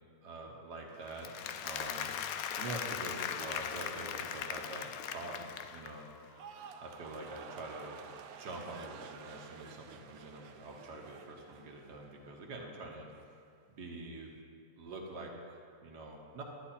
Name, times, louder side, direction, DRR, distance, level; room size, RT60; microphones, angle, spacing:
voice 1, 0.2-5.4 5.7-6.0 6.8-8.0 8.4-13.1 13.8-14.3 14.8-16.4, right 2 dB, 90° right, 0 dB, 2.0 m, -45 dB
Applause, 1.1-6.1, left 8 dB, 70° left, 1.0 m, -39 dB
sound 1, 6.2-12.5 12.8-13.3, right 6 dB, 70° right, 1.1 m, -51 dB
11.5 x 10.5 x 4.3 m, 2.3 s
omnidirectional pair, 1.7 m